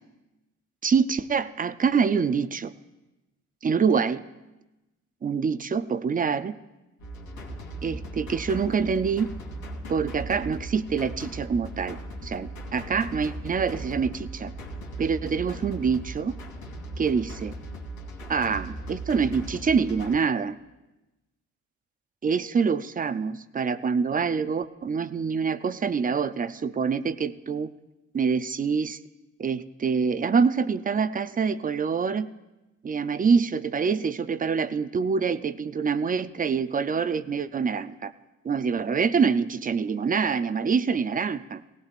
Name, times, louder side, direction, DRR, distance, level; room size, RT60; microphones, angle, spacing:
voice 1, 0.8-2.7 3.6-4.2 5.2-6.5 7.8-9.3 9.9-12.0 12.2-14.5 15.0-16.3 17.0-17.5 18.3-20.5 22.2-27.7 28.1-29.0 29.4-32.3 32.8-38.1 38.4-41.6, right 5 dB, 30° right, 14 dB, 0.5 m, -25 dB
sound 1, 7.0-20.2, right 1 dB, 70° left, 2.5 m, -38 dB
17.5 x 16.0 x 2.5 m, 1.0 s
cardioid pair, 90°, 30 cm